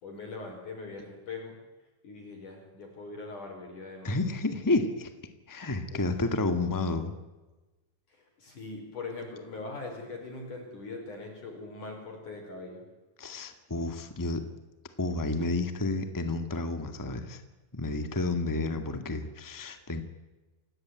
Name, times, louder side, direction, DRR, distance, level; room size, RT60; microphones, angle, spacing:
voice 1, 0.0-1.6 2.0-4.2 5.9-6.1 8.4-12.8, left 3 dB, 50° left, 2 dB, 6.3 m, -41 dB
voice 2, 4.0-5.1 5.5-7.1 13.2-14.4 15.0-17.4 17.7-20.0, left 2 dB, 20° left, 8 dB, 0.5 m, -30 dB
28.5 x 17.0 x 9.6 m, 1.1 s
omnidirectional pair, 4.5 m